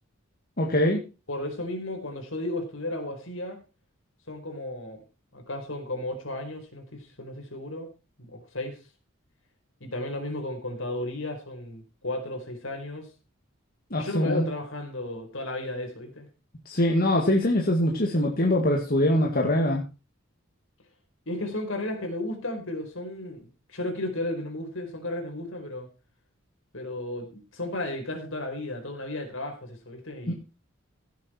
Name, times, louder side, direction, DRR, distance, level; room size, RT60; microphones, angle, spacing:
voice 1, 0.6-1.0 13.9-14.4 16.7-19.8 30.3-30.4, left 1 dB, 45° left, 0 dB, 2.2 m, -23 dB
voice 2, 1.3-3.6 4.3-5.0 5.3-7.9 8.3-8.8 9.8-13.1 13.9-16.3 21.3-25.9 26.7-30.3, left 1 dB, 70° left, 4 dB, 4.7 m, -34 dB
16.5 x 8.6 x 4.5 m, 0.31 s
head